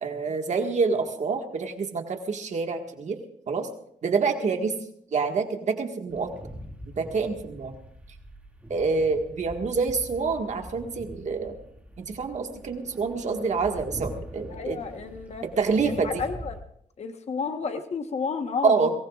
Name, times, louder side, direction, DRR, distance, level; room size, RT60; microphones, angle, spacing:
voice 1, 0.0-3.2 3.5-3.7 4.0-4.7 5.1-6.3 7.0-7.7 8.7-11.6 12.0-14.8 15.6-16.2 18.6-18.9, right 4 dB, 55° right, 4 dB, 1.8 m, -27 dB
sound 1, 6.1-16.6, equal, 10° right, 2.3 m, -43 dB
voice 2, 14.5-15.4 15.8-16.6 17.0-18.9, left 5 dB, 50° left, 6 dB, 1.2 m, -31 dB
22.5 x 19.0 x 2.5 m, 0.68 s
wide cardioid pair, 120°, 14 cm